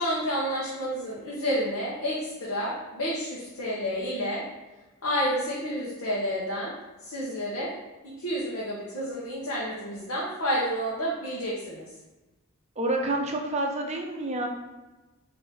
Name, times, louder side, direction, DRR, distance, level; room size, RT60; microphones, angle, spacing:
voice 1, 0.0-4.4 5.0-6.7 7.0-7.7 8.0-11.8, equal, 70° left, -7 dB, 0.9 m, -30 dB
voice 2, 12.8-14.5, right 2 dB, 30° right, 2 dB, 0.6 m, -28 dB
3.6 x 2.7 x 4.0 m, 1.1 s
head